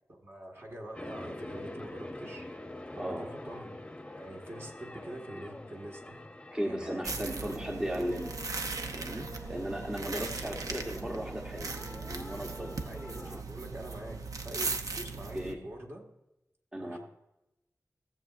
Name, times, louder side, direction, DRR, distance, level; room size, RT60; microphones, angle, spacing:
voice 1, 0.1-2.5 2.9-6.2 6.7-7.3 10.0-10.6 12.8-16.1 16.8-17.0, right 1 dB, 45° right, 0 dB, 1.8 m, -45 dB
sound 1, 0.9-13.4, left 1 dB, 15° left, 0.8 m, -45 dB
voice 2, 3.0-3.3 6.5-8.3 8.9-11.7 12.1-12.8 15.3-15.6 16.7-17.0, equal, 15° right, 1 dB, 1.0 m, -36 dB
sound 2, 7.0-15.5, right 4 dB, 80° right, 0.7 m, -38 dB
16.5 x 7.5 x 2.5 m, 0.90 s
wide cardioid pair, 95°, 6 cm